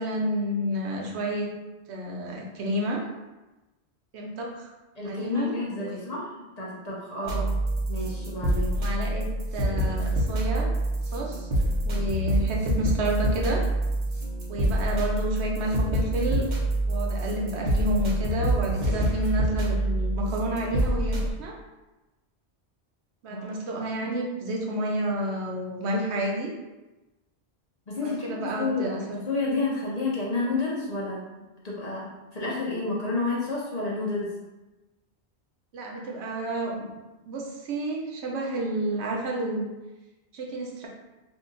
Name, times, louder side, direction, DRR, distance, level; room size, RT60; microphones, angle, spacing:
voice 1, 0.0-1.5 1.9-3.0 4.1-4.7 5.0-6.0 7.2-7.5 8.8-9.2 9.5-10.7 11.1-11.5 11.8-13.6 14.5-16.4 16.9-21.6 23.2-26.5 28.0-29.2 35.7-36.9 37.3-39.7 40.3-40.9, right 1 dB, 80° right, -1 dB, 0.9 m, -30 dB
voice 2, 5.0-6.3 6.6-7.4 7.9-8.8 23.3-23.5 27.9-31.2 31.6-34.3 35.9-36.0 36.4-36.5, left 3 dB, 40° left, -5 dB, 0.7 m, -30 dB
sound 1, 7.3-21.3, right 1 dB, 50° right, 0.8 m, -26 dB
2.7 x 2.5 x 3.8 m, 1.1 s
omnidirectional pair, 1.1 m